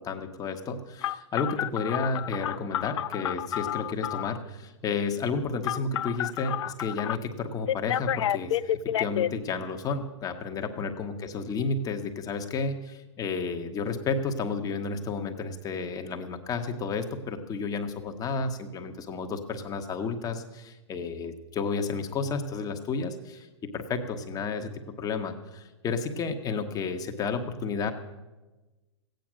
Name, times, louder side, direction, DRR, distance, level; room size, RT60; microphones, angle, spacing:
voice 1, 0.1-23.5 23.7-24.7 25.0-27.9, left 4 dB, 25° left, 5 dB, 1.3 m, -32 dB
Telephone, 1.0-4.4 5.6-7.2 7.7-9.3, left 11 dB, 70° left, 0.5 m, -30 dB
15.5 x 9.1 x 6.3 m, 1.2 s
hypercardioid pair, 120°, 15 cm